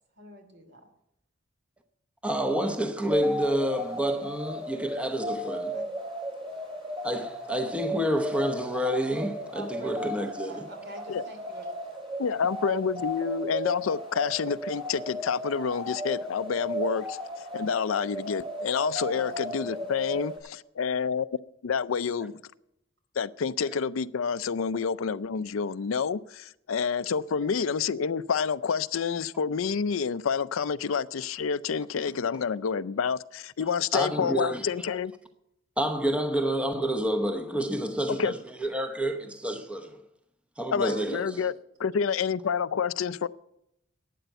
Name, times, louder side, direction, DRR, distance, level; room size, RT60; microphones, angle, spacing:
voice 1, 0.2-0.8 5.7-5.9 6.5-6.6 9.5-11.7 19.1-20.1 40.9-41.4, right 2 dB, 60° right, 2.8 m, -45 dB
voice 2, 2.2-5.8 7.0-10.6 10.9-11.0 33.9-34.6 35.8-40.0 40.6-41.2, equal, 5° right, 0.9 m, -29 dB
sound 1, 3.1-20.4, equal, 25° right, 7.1 m, -35 dB
voice 3, 12.2-17.2 17.5-21.3 21.6-22.4 23.2-35.1 38.1-38.3 40.7-41.5 41.8-43.3, left 6 dB, 80° left, 0.5 m, -28 dB
12.0 x 9.2 x 8.0 m
head